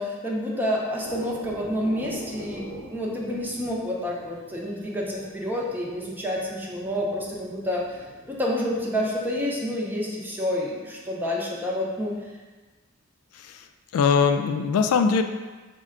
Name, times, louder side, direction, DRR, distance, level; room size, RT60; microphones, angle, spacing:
voice 1, 0.0-12.1, equal, 10° right, -3 dB, 0.6 m, -29 dB
sound 1, 1.0-10.0 10.3-11.0 11.3-11.8 12.1-12.2, equal, 55° right, 1.0 m, -44 dB
voice 2, 13.3-13.7 13.9-15.2, left 5 dB, 80° left, 12 dB, 0.3 m, -21 dB
5.3 x 2.2 x 3.6 m, 1.3 s
head